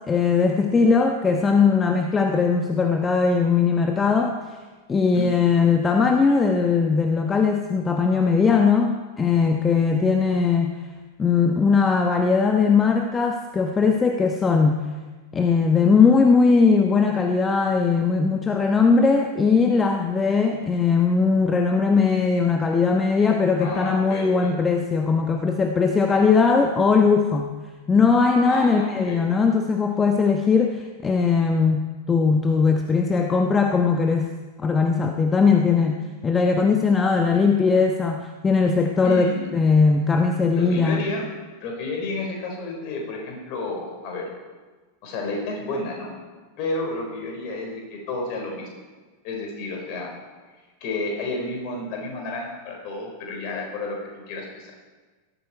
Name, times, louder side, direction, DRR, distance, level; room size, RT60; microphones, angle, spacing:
voice 1, 0.1-4.4 4.9-10.7 11.2-14.9 15.3-27.5 27.9-34.3 34.6-39.3 39.5-41.1, left 5 dB, 15° left, 4 dB, 1.1 m, -19 dB
voice 2, 23.6-24.5 28.4-29.2 39.0-39.5 40.6-41.2 41.6-44.3 45.0-46.1 46.6-48.7 49.2-50.1 50.8-54.0 54.3-54.7, left 2 dB, 45° left, 0 dB, 5.0 m, -31 dB
18.0 x 13.5 x 4.6 m, 1.3 s
figure-of-eight pair, 90°, 0 cm